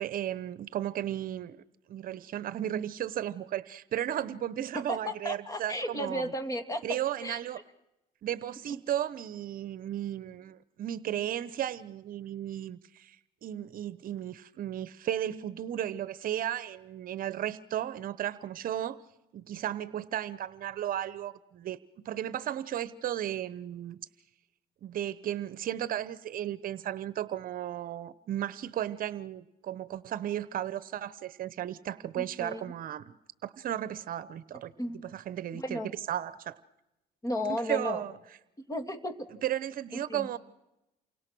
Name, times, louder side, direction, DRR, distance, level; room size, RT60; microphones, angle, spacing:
voice 1, 0.0-1.6 1.9-6.2 6.8-7.6 8.2-13.2 13.4-19.0 19.3-24.0 24.8-33.2 33.4-34.7 35.1-35.8 36.1-36.6 37.4-38.1 39.4-40.4, right 11 dB, 55° right, 16 dB, 0.9 m, -34 dB
voice 2, 4.7-7.4 32.2-32.7 34.8-35.0 35.5-35.9 37.2-38.0 38.7-39.3 39.9-40.3, left 1 dB, 20° left, 8 dB, 2.7 m, -34 dB
29.0 x 24.5 x 6.2 m, 0.92 s
cardioid pair, 110°, 17 cm